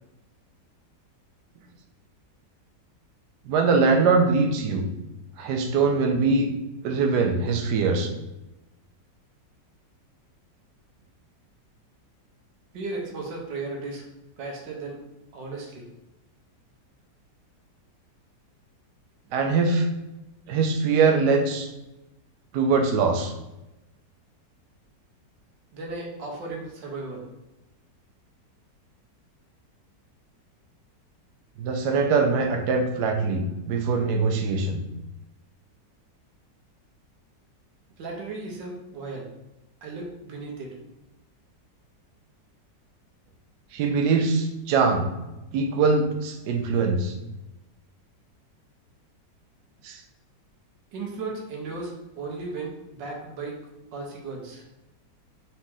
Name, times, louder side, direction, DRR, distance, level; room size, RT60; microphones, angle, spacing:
voice 1, 3.5-4.8 5.4-6.5 6.8-8.1 19.3-19.9 20.5-21.7 22.5-23.3 31.6-34.8 43.7-45.1 45.5-47.1 49.8-50.0, right 4 dB, 75° right, 4 dB, 1.2 m, -22 dB
voice 2, 12.7-14.1 14.4-15.0 15.3-15.9 25.7-27.2 38.0-39.3 39.8-40.8 50.9-53.6 53.9-54.6, right 3 dB, 90° right, 0 dB, 1.6 m, -35 dB
4.2 x 2.9 x 3.6 m, 0.97 s
omnidirectional pair, 1.9 m